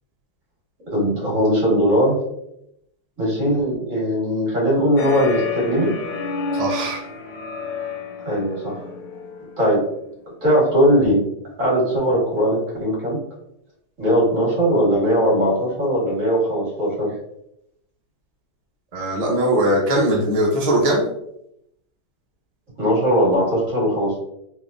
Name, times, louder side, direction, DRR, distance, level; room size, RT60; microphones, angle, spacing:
voice 1, 0.9-2.2 3.2-5.9 8.2-8.8 9.6-9.8 10.4-11.3 11.6-13.2 14.0-17.1 22.8-24.2, equal, 45° right, -5 dB, 1.9 m, -19 dB
sound 1, 5.0-9.6, left 4 dB, 80° left, 1.4 m, -29 dB
voice 2, 6.5-7.0 18.9-21.0, right 1 dB, 85° right, -2 dB, 0.3 m, -20 dB
3.6 x 3.1 x 2.6 m, 0.79 s
omnidirectional pair, 2.0 m